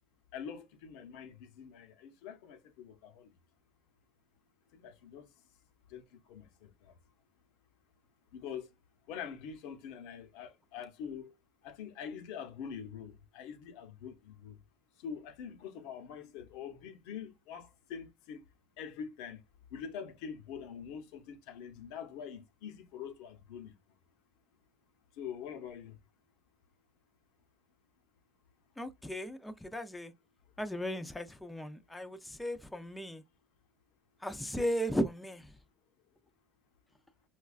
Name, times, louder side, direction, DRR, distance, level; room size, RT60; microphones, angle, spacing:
voice 1, 0.3-3.3 4.7-5.4 5.9-7.0 8.3-8.7 9.1-11.4 11.6-14.6 15.0-18.4 18.8-19.4 19.7-23.7 25.1-26.0, left 7 dB, 85° left, 0.6 m, -45 dB
voice 2, 28.8-30.1 30.6-33.2 34.2-35.5, equal, 5° left, 0.4 m, -36 dB
4.7 x 2.2 x 2.3 m
cardioid pair, 115°, 0 cm